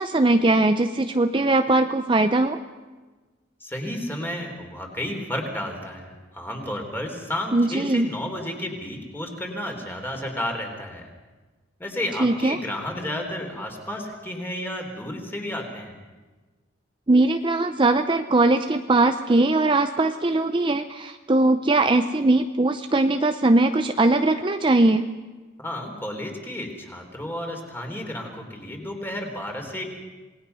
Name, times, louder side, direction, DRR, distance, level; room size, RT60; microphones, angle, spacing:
voice 1, 0.0-2.6 7.5-8.1 12.2-12.6 17.1-25.1, right 2 dB, 25° right, 7 dB, 0.6 m, -20 dB
voice 2, 3.6-11.1 11.8-15.9 25.6-29.8, left 1 dB, 10° left, 2 dB, 3.5 m, -32 dB
27.0 x 19.5 x 5.6 m, 1.3 s
head